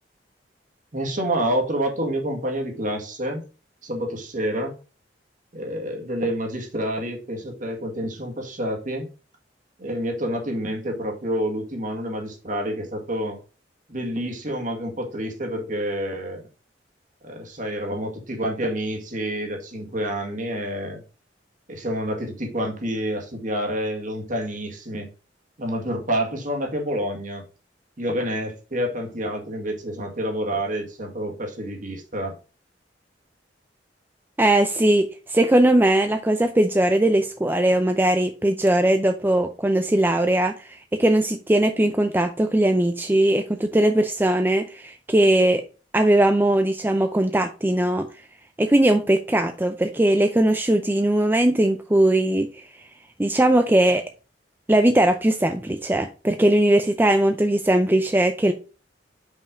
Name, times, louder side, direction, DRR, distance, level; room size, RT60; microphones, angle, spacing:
voice 1, 0.9-3.4 3.8-4.7 5.5-9.1 9.8-13.4 13.9-16.4 17.2-21.0 21.7-25.1 25.6-27.4 28.0-32.4, equal, 45° right, 1.8 m, -28 dB
voice 2, 34.4-45.6 45.9-48.1 48.6-52.5 53.2-54.0 54.7-58.5, right 1 dB, 10° right, 0.5 m, -20 dB
5.5 x 5.3 x 5.1 m
head